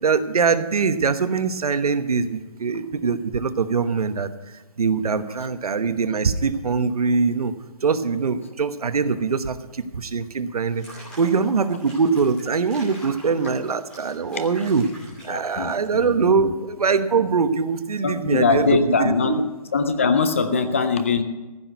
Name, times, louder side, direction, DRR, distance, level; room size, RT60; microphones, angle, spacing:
voice 1, 0.0-4.3 4.8-7.5 7.8-10.8 11.2-14.8 15.2-19.4, right 5 dB, 80° right, 11 dB, 1.1 m, -22 dB
Water / Bathtub (filling or washing), 10.6-16.1, right 1 dB, 5° left, 2.6 m, -45 dB
voice 2, 15.3-16.5 18.0-19.4 19.7-21.2, left 4 dB, 20° left, 10 dB, 0.5 m, -22 dB
15.0 x 6.2 x 9.3 m, 1.1 s
hypercardioid pair, 170°, 19 cm